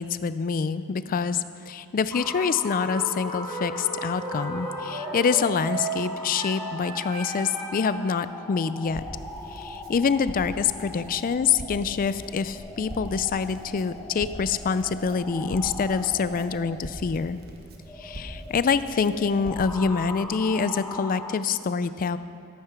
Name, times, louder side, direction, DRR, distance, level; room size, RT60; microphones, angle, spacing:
voice 1, 0.0-9.0 9.5-17.4 18.0-22.2, left 5 dB, 40° left, 14 dB, 0.4 m, -26 dB
sound 1, 2.1-21.4, left 1 dB, 10° left, 0.9 m, -40 dB
sound 2, 2.7-7.9, right 2 dB, 25° right, 1.7 m, -35 dB
Crackle, 8.9-19.8, equal, 45° right, 1.3 m, -42 dB
13.0 x 8.7 x 5.8 m, 2.5 s
head